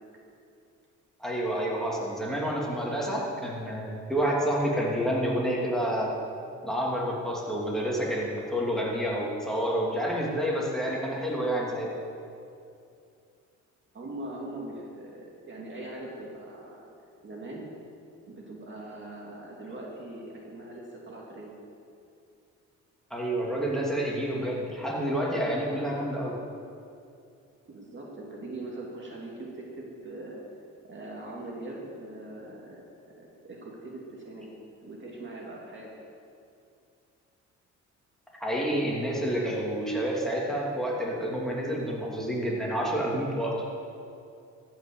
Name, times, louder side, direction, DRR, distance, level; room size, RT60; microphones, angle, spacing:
voice 1, 1.2-6.1 6.6-11.9 23.1-26.4 38.4-43.6, equal, ahead, -4 dB, 2.7 m, -29 dB
voice 2, 13.9-16.9 17.2-17.7 18.3-21.6 27.6-30.4 30.8-32.8 33.2-34.5 34.8-35.9, right 2 dB, 40° right, -3 dB, 2.3 m, -41 dB
14.5 x 6.0 x 7.0 m, 2.5 s
cardioid pair, 90°, 30 cm